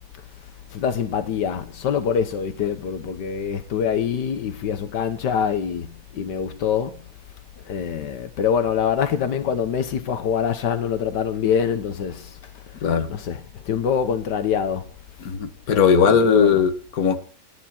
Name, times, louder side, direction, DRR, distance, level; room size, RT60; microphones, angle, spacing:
voice 1, 0.7-7.0 7.7-12.4 13.1-13.4 13.6-14.9 15.7-16.5, left 7 dB, 85° left, 1.7 m, -25 dB
voice 2, 15.2-17.2, left 6 dB, 60° left, 1.9 m, -18 dB
28.0 x 9.6 x 4.4 m
omnidirectional pair, 1.8 m